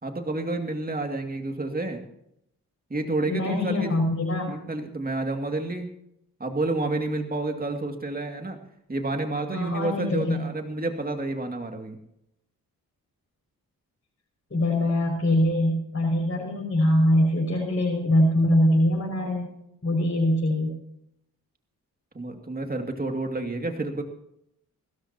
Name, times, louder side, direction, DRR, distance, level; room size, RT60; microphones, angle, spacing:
voice 1, 0.0-2.0 2.9-4.0 4.5-5.9 6.4-8.6 8.9-12.0 22.1-24.0, right 2 dB, 25° right, 4 dB, 2.4 m, -29 dB
voice 2, 3.3-4.5 9.5-10.4 14.5-19.5 19.8-20.8, left 1 dB, 35° left, -2 dB, 5.9 m, -23 dB
22.0 x 13.5 x 2.9 m, 0.76 s
cardioid pair, 55°, 37 cm